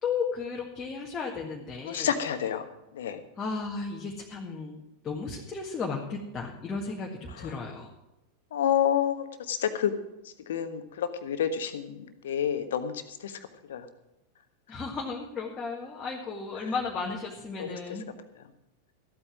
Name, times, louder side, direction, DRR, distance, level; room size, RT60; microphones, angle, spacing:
voice 1, 0.0-2.1 3.4-7.9 14.7-18.1, left 4 dB, 20° left, -1 dB, 1.8 m, -34 dB
voice 2, 1.9-2.6 2.9-3.2 8.5-9.9 10.5-12.9 13.2-13.3 13.7-13.8 17.6-17.8, left 9 dB, 60° left, 9 dB, 1.3 m, -28 dB
14.0 x 8.8 x 6.2 m, 0.95 s
figure-of-eight pair, 90°, 0 cm